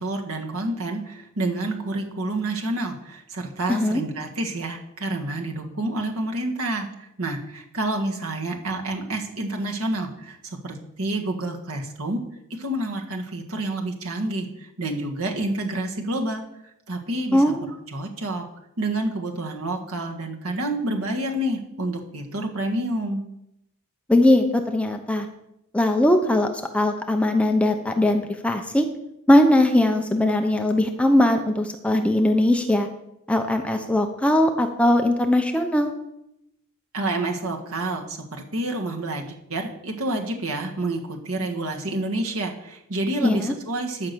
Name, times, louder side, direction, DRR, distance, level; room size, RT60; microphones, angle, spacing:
voice 1, 0.0-12.2 12.6-16.4 16.9-17.4 17.9-18.4 18.8-23.2 36.9-44.1, right 2 dB, 70° right, 2 dB, 1.6 m, -28 dB
voice 2, 3.7-4.0 17.3-17.7 24.1-25.3 25.7-26.5 26.7-28.9 29.3-32.9 33.3-35.9 43.2-43.5, left 1 dB, 5° left, 5 dB, 0.8 m, -20 dB
12.5 x 5.9 x 6.8 m, 0.83 s
head